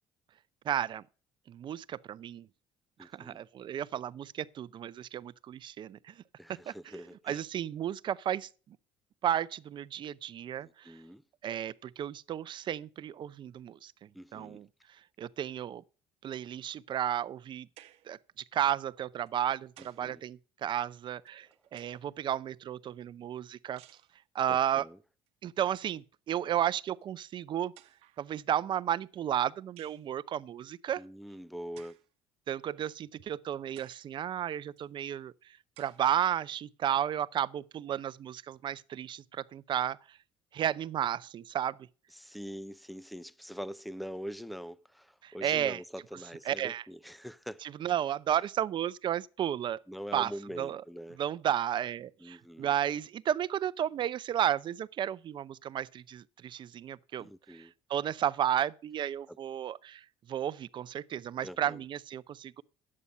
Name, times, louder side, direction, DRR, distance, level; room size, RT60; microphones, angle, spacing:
voice 1, 0.6-1.0 1.5-2.5 3.0-6.2 6.5-6.7 7.3-8.8 9.2-11.0 11.4-15.8 16.2-17.7 18.1-23.8 24.3-24.9 25.4-27.7 28.2-31.0 32.5-40.2 40.5-41.9 45.2-45.8 46.5-46.8 47.6-49.8 50.1-50.3 50.6-50.8 51.2-62.6, right 10 dB, 50° right, 0.6 m, -33 dB
voice 2, 3.0-3.4 6.4-7.4 10.6-11.2 14.1-14.6 19.8-20.2 24.5-25.0 31.0-32.0 42.1-47.6 49.9-51.2 52.2-52.7 57.2-57.7 59.3-59.4 61.4-61.8, equal, ahead, 0.5 m, -44 dB
sound 1, 17.8-18.2 19.3-20.1 21.3-22.2 23.8-24.2 25.3-25.4 25.6-26.0 27.0-27.1 27.8-28.3 29.8-30.1 31.8-32.1 32.8-32.9 33.8-34.1 34.8-34.9 35.8-36.1, right 15 dB, 75° right, 0.9 m, -58 dB
11.0 x 8.6 x 5.4 m
cardioid pair, 95°, 10 cm